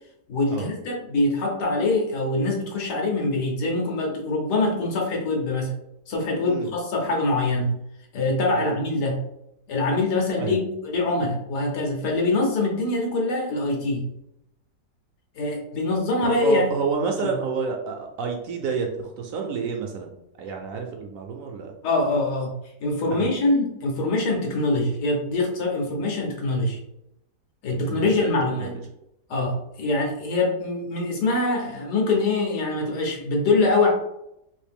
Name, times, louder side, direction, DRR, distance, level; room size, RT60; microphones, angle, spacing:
voice 1, 0.3-5.7 6.1-7.7 8.1-9.2 9.7-14.1 15.3-16.7 17.2-17.4 21.8-22.5 22.8-26.8 27.6-28.8 29.3-33.9, left 2 dB, 85° left, -1 dB, 1.5 m, -24 dB
voice 2, 16.2-20.1 20.4-21.7 23.1-23.3 27.7-28.7, right 5 dB, 70° right, 2 dB, 0.9 m, -29 dB
3.2 x 2.8 x 3.4 m, 0.83 s
omnidirectional pair, 1.7 m